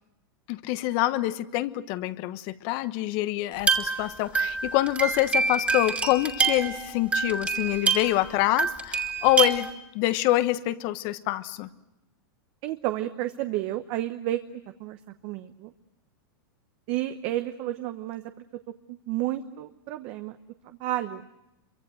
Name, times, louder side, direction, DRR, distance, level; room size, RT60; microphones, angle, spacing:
voice 1, 0.5-9.7 9.9-11.7, left 16 dB, 40° left, 14 dB, 1.1 m, -26 dB
sound 1, 3.6-8.3 8.6-9.7, right 5 dB, 10° right, 2.6 m, -26 dB
voice 2, 12.6-14.4 14.8-15.0 15.2-15.7 16.9-18.2 18.9-20.4 20.6-21.2, right 14 dB, 40° right, 8 dB, 1.0 m, -31 dB
26.0 x 24.0 x 7.8 m, 0.91 s
supercardioid pair, 150°, 12 cm